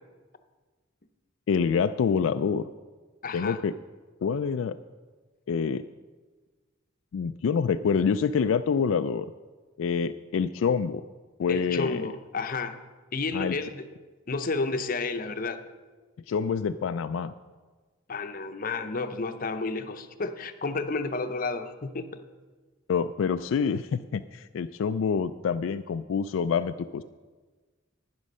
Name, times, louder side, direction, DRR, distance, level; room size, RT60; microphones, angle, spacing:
voice 1, 1.5-2.7 3.3-3.7 4.2-4.8 5.5-5.9 7.1-9.3 9.8-11.0 11.4-12.1 13.3-13.6 16.3-17.3 22.9-27.0, left 6 dB, 75° left, 9 dB, 0.3 m, -26 dB
voice 2, 3.2-3.6 11.5-12.8 13.1-13.9 14.3-15.6 18.1-22.1, left 3 dB, 45° left, 8 dB, 0.7 m, -31 dB
11.5 x 9.7 x 5.4 m, 1.4 s
head